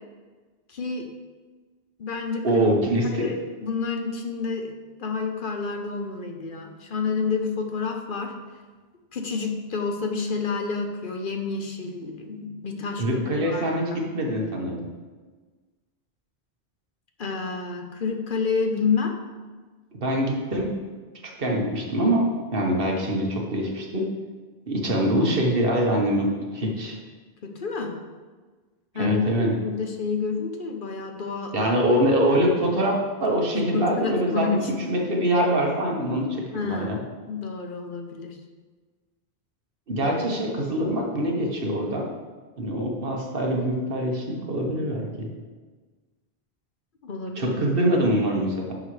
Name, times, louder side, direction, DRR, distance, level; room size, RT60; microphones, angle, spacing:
voice 1, 0.7-1.1 2.0-2.6 3.1-3.4 3.6-4.7 5.0-8.3 9.1-14.0 17.2-19.1 27.4-28.0 28.9-29.3 29.6-31.5 33.7-34.7 36.5-38.4 47.0-47.5, left 5 dB, 55° left, 4 dB, 1.0 m, -29 dB
voice 2, 2.4-3.3 13.0-14.9 20.0-20.7 21.2-22.3 22.5-24.1 24.7-27.0 28.9-29.5 31.5-34.6 34.9-37.0 39.9-42.1 42.6-45.3 47.3-48.7, right 1 dB, 60° right, 0 dB, 1.5 m, -24 dB
10.0 x 6.5 x 3.3 m, 1.4 s
omnidirectional pair, 1.1 m